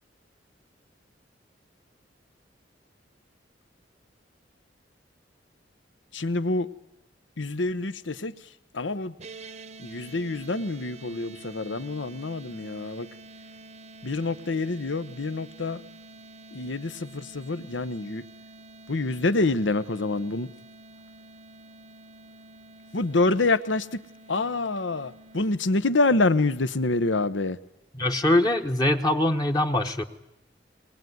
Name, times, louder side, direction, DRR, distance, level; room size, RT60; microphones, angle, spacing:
voice 1, 6.1-6.7 7.4-8.3 8.7-9.1 9.8-13.1 14.0-15.8 16.5-18.2 18.9-20.5 22.9-24.0 24.3-27.6, left 2 dB, 85° left, 1.0 m, -26 dB
sound 1, 9.2-25.5, right 2 dB, 35° right, 0.8 m, -48 dB
voice 2, 27.9-30.0, left 1 dB, 20° left, 1.0 m, -23 dB
21.0 x 21.0 x 9.4 m
head